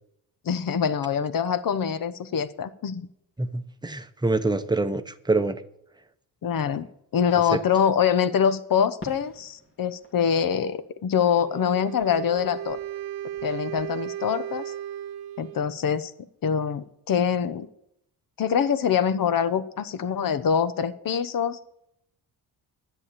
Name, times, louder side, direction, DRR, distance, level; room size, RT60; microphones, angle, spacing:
voice 1, 0.4-3.1 6.4-6.9 7.1-12.8 13.4-14.7 15.4-16.1 16.4-17.7 18.4-21.6, left 7 dB, 55° left, 13 dB, 1.0 m, -24 dB
voice 2, 3.4-5.6, right 3 dB, 10° right, 9 dB, 0.8 m, -26 dB
Fireworks, 9.0-11.6 12.0-13.9, left 2 dB, 30° left, 1.8 m, -48 dB
Wind instrument woodwind instrument, 11.4-15.8, right 11 dB, 70° right, 0.6 m, -35 dB
10.5 x 7.1 x 8.4 m, 0.77 s
cardioid pair, 85°, 40 cm